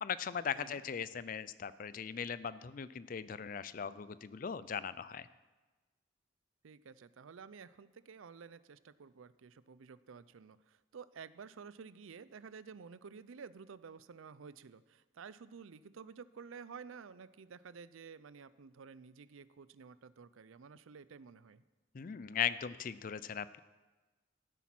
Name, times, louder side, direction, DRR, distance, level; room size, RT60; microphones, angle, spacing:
voice 1, 0.0-5.3 21.9-23.6, left 7 dB, 45° left, 16 dB, 0.4 m, -39 dB
voice 2, 6.6-21.6, right 5 dB, 90° right, 17 dB, 0.5 m, -52 dB
14.0 x 8.2 x 6.0 m, 1.2 s
head